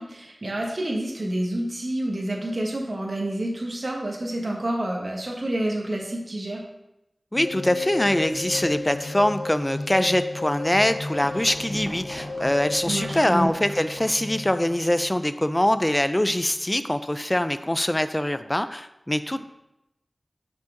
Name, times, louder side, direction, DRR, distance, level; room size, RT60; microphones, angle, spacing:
voice 1, 0.0-6.6 12.9-13.5, right 1 dB, 55° right, -1 dB, 1.3 m, -28 dB
sound 1, 7.3-15.9, left 2 dB, 85° left, 0.5 m, -34 dB
voice 2, 7.3-19.4, left 1 dB, 20° left, 11 dB, 0.3 m, -23 dB
sound 2, 11.2-14.3, right 1 dB, 25° right, 1.4 m, -42 dB
5.7 x 5.2 x 3.8 m, 0.88 s
wide cardioid pair, 60°, 0 cm